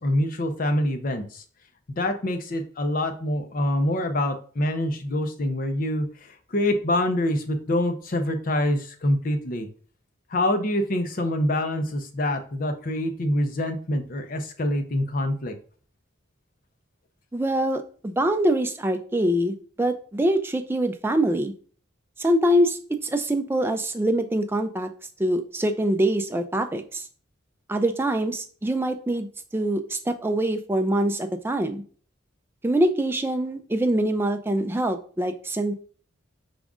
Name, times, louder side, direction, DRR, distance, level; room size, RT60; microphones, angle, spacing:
voice 1, 0.0-1.4 1.9-9.7 10.3-15.5, left 1 dB, 45° left, 6 dB, 0.6 m, -25 dB
voice 2, 17.3-21.5 22.2-24.9 25.2-27.1 27.7-29.3 29.5-31.8 32.6-35.7, right 1 dB, 10° right, 6 dB, 0.3 m, -24 dB
5.1 x 2.4 x 3.6 m, 0.43 s
head